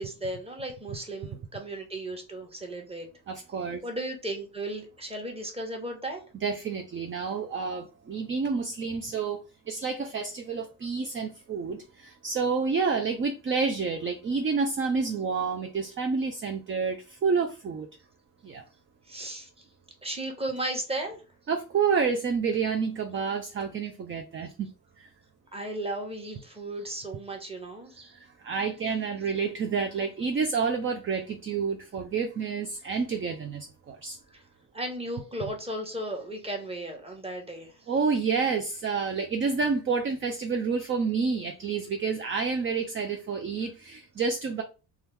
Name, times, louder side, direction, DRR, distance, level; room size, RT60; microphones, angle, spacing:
voice 1, 0.0-3.1 3.8-6.2 19.1-19.5 20.0-21.2 25.5-28.2 34.3-34.4 34.7-37.7, right 1 dB, 15° right, 1.1 m, -35 dB
voice 2, 3.3-3.8 6.4-9.4 9.7-17.9 18.4-18.6 21.5-24.7 25.0-25.1 28.1-34.2 37.9-44.6, right 5 dB, 30° right, 0.5 m, -29 dB
2.8 x 2.3 x 3.4 m
supercardioid pair, 65°, 43 cm